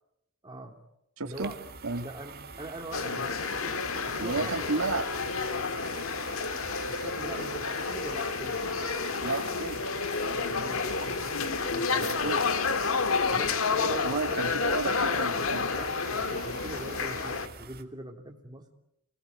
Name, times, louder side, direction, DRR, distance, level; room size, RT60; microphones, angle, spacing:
voice 1, 0.4-0.8 1.2-1.6 2.0-3.3 4.1-4.8 6.2-8.6 10.3-12.5 13.3-14.4 15.1-15.3 15.6-18.7, right 1 dB, 20° right, 2 dB, 3.1 m, -42 dB
voice 2, 1.2-1.5 1.8-2.1 4.2-5.0 9.2-9.8 11.9-12.4 13.8-15.7, right 3 dB, 85° right, 6 dB, 2.2 m, -32 dB
sound 1, 1.3-17.8, right 4 dB, 50° right, 2.0 m, -45 dB
sound 2, 2.9-17.5, left 4 dB, 70° left, 1.6 m, -30 dB
26.0 x 19.5 x 9.3 m, 0.80 s
head